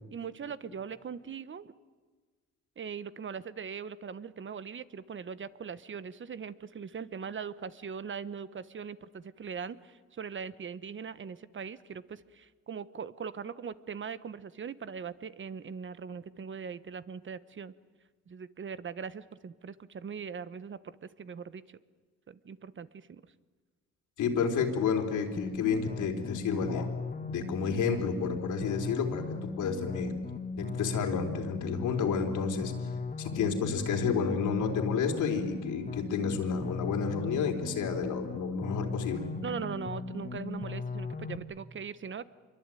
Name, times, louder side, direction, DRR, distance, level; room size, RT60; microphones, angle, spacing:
voice 1, 0.1-1.7 2.8-17.7 18.3-21.8 22.3-23.2 37.2-37.3 39.4-42.3, right 6 dB, 40° right, 15 dB, 1.2 m, -40 dB
voice 2, 24.2-26.9 27.3-30.2 30.6-32.7 33.2-39.3, left 6 dB, 80° left, 4 dB, 4.0 m, -30 dB
sound 1, 25.4-41.4, left 3 dB, 25° left, 2.2 m, -38 dB
26.5 x 23.0 x 9.2 m, 1.4 s
cardioid pair, 90°, 30 cm